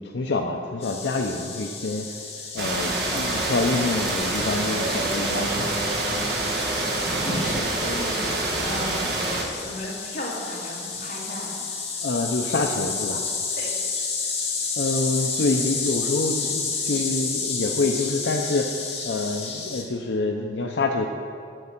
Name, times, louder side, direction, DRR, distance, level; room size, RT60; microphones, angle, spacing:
voice 1, 0.0-2.1 2.5-5.7 12.0-13.3 14.8-21.1, left 3 dB, 80° left, 2 dB, 0.6 m, -26 dB
sound 1, 0.8-19.8, left 4 dB, 35° left, 1.7 m, -31 dB
sound 2, 2.6-9.4, right 2 dB, 65° right, 1.6 m, -26 dB
voice 2, 7.2-9.2 9.6-11.7 13.6-13.8, left 1 dB, 50° left, -5 dB, 2.5 m, -35 dB
7.8 x 7.6 x 7.2 m, 2.4 s
head